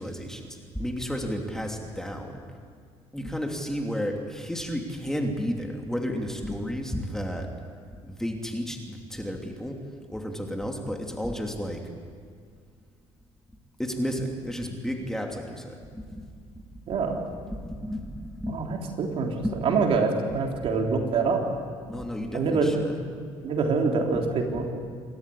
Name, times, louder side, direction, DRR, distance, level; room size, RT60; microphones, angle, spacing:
voice 1, 0.0-2.4 3.1-7.6 8.1-9.8 10.1-11.9 13.8-16.3 16.6-17.2 17.4-19.0 19.4-19.6 20.6-20.8 21.8-23.0, equal, 5° left, 2 dB, 2.9 m, -32 dB
voice 2, 16.9-17.2 18.5-19.3 19.6-21.4 22.3-22.8 23.4-24.7, right 4 dB, 55° right, 1 dB, 3.7 m, -25 dB
28.0 x 13.5 x 10.0 m, 2.1 s
cardioid pair, 100°, 11 cm